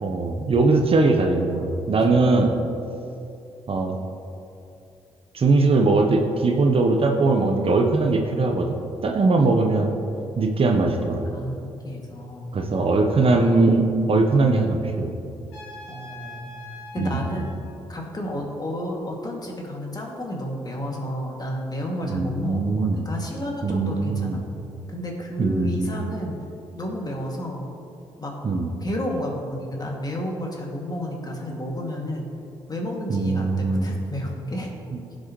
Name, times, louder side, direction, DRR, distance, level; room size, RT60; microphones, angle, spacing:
voice 1, 0.0-2.5 3.7-4.0 5.3-8.8 9.0-9.9 10.4-11.2 12.5-15.1 17.0-17.3 22.0-23.0 23.6-24.4 25.4-25.9 28.4-28.7 33.1-33.9 34.9-35.0, right 3 dB, 45° right, 3 dB, 1.1 m, -20 dB
voice 2, 11.3-12.6 15.9-16.6 16.9-17.6 17.9-22.7 22.9-24.4 24.9-26.4 26.7-27.6 28.2-28.3 28.8-32.3 32.7-34.7, equal, 30° left, -1 dB, 2.5 m, -31 dB
Trumpet, 15.5-17.5, left 1 dB, 90° left, 2.2 m, -41 dB
16.5 x 6.5 x 3.2 m, 2.7 s
hypercardioid pair, 45°, 13 cm